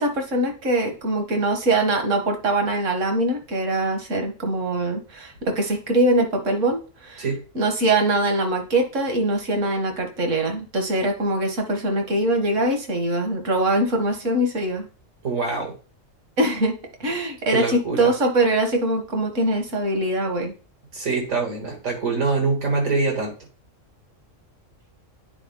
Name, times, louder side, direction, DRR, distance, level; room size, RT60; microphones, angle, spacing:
voice 1, 0.0-7.2 7.5-14.9 16.4-16.7 17.0-20.5, right 1 dB, 70° right, 4 dB, 1.7 m, -23 dB
voice 2, 15.2-15.7 17.5-18.1 20.9-23.3, right 4 dB, 85° right, 0 dB, 2.7 m, -24 dB
9.1 x 4.3 x 3.7 m, 0.35 s
omnidirectional pair, 1.3 m